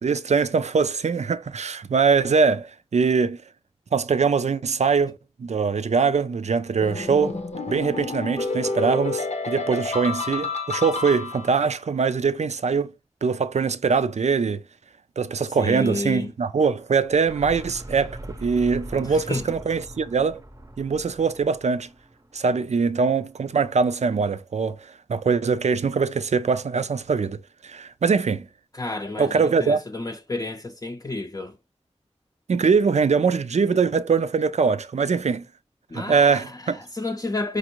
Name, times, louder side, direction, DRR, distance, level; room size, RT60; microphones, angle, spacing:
voice 1, 0.0-3.4 3.9-7.4 7.7-12.9 13.2-14.6 15.2-20.4 20.8-21.9 22.3-28.5 29.2-29.8 32.5-35.4 35.9-36.8, right 5 dB, 80° right, 0.4 m, -22 dB
sound 1, 6.8-11.7, left 3 dB, 85° left, 0.7 m, -29 dB
voice 2, 15.6-16.3 18.9-19.4 28.7-31.6 35.9-37.6, left 2 dB, 30° left, 0.5 m, -31 dB
sound 2, 17.0-22.8, right 1 dB, 30° right, 0.6 m, -41 dB
5.1 x 2.5 x 2.9 m
wide cardioid pair, 50°, 11 cm